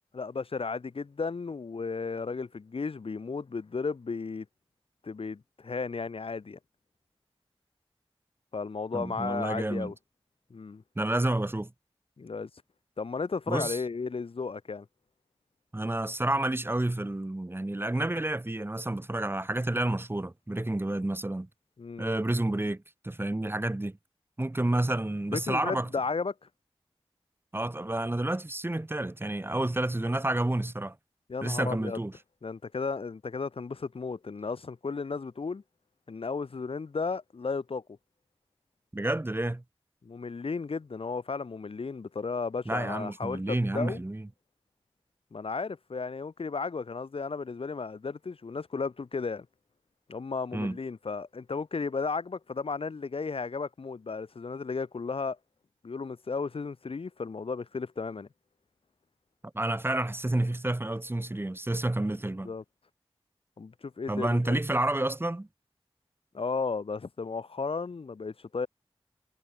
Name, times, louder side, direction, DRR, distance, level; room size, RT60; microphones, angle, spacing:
voice 1, 0.1-4.5 5.0-6.6 8.5-9.9 10.5-10.8 12.2-12.5 13.0-14.9 21.8-22.1 25.3-26.3 31.3-32.0 32.4-35.6 36.1-37.8 40.0-44.0 45.3-49.5 50.1-55.4 55.8-58.3 62.4-62.6 63.6-64.6 66.3-68.7, left 4 dB, 65° left, 0.7 m, -34 dB
voice 2, 8.9-9.9 11.0-11.7 13.5-13.8 15.7-21.5 22.0-23.9 24.4-25.9 27.5-31.0 31.4-32.1 38.9-39.6 42.7-44.3 50.5-50.8 59.5-62.5 64.1-65.5, right 1 dB, 20° right, 0.8 m, -30 dB
cardioid pair, 45°, 10 cm